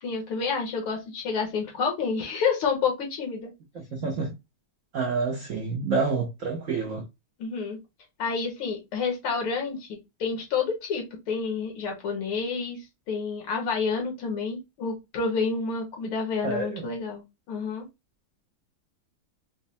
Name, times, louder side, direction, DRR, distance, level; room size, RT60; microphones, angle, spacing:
voice 1, 0.0-3.5 7.4-7.8 8.2-9.9 10.2-17.9, left 5 dB, 85° left, 2.2 m, -29 dB
voice 2, 3.7-4.3 4.9-7.0 16.4-16.9, right 4 dB, 85° right, 0.7 m, -28 dB
5.1 x 2.1 x 2.6 m
omnidirectional pair, 2.3 m